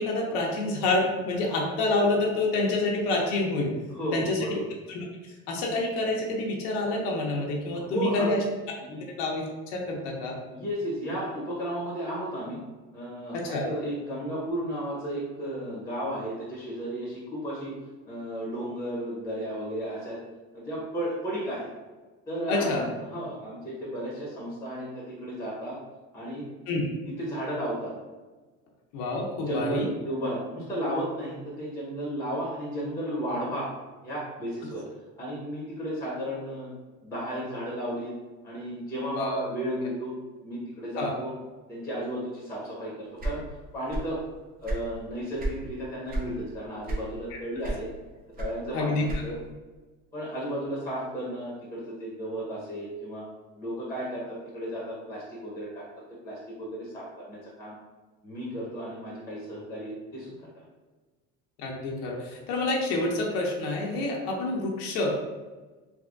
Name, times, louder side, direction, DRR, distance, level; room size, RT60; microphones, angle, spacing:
voice 1, 0.0-3.7 4.1-4.5 4.9-5.0 5.5-8.4 9.2-10.4 13.3-13.7 22.5-22.8 26.7-26.8 28.9-29.9 39.1-39.4 41.0-41.1 47.3-47.4 48.7-49.2 61.6-65.1, left 2 dB, 85° left, -1 dB, 0.8 m, -28 dB
voice 2, 3.9-4.6 7.7-8.3 8.8-9.0 9.9-10.1 10.5-12.6 12.9-17.7 18.0-20.2 20.5-21.7 22.3-25.8 26.1-26.5 27.0-27.9 29.4-33.7 34.0-34.9 35.2-36.7 37.0-38.1 38.4-40.1 40.4-41.3 41.7-43.4 43.7-44.2 44.6-47.9 48.4-49.4 50.1-53.2 53.6-54.2 54.5-55.8 56.2-57.7 58.2-60.5, equal, 10° left, -5 dB, 1.0 m, -34 dB
sound 1, 43.2-44.2 44.5-45.6 46.1-46.4 46.8-47.3 47.6-49.5, right 1 dB, 30° right, 0.7 m, -32 dB
3.4 x 2.7 x 2.5 m, 1.2 s
cardioid pair, 130°, 30 cm